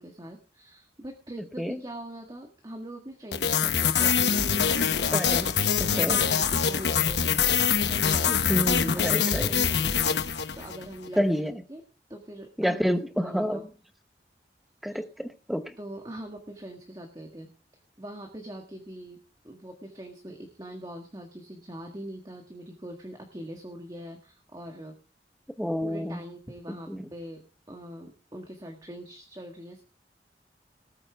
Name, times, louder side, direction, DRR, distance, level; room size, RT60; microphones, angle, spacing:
voice 1, 0.0-5.2 5.5-10.2 10.6-11.3 11.7-11.8 12.1-12.8 13.2-13.6 14.9-15.0 15.8-17.5 18.0-19.2 19.4-25.0 25.8-29.8, right 1 dB, 20° right, 2 dB, 1.6 m, -42 dB
sound 1, 3.3-10.9, left 7 dB, 80° left, 1.1 m, -24 dB
voice 2, 5.1-5.5 6.0-6.2 8.3-9.5 11.2-11.5 12.6-13.6 14.8-15.6 25.6-26.2 26.9-27.0, equal, ahead, 9 dB, 0.9 m, -28 dB
19.0 x 8.8 x 3.5 m, 0.35 s
head